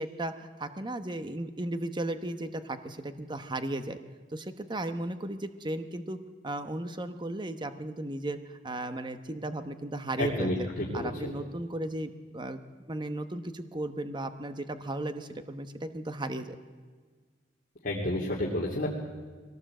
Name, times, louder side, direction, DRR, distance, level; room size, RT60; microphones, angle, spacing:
voice 1, 0.0-4.0 4.3-6.2 6.4-10.7 10.9-12.6 12.9-16.6, right 1 dB, 25° right, 9 dB, 1.1 m, -35 dB
voice 2, 10.2-11.3 17.8-18.9, left 1 dB, 50° left, -5 dB, 2.8 m, -30 dB
22.5 x 17.5 x 7.8 m, 1.5 s
head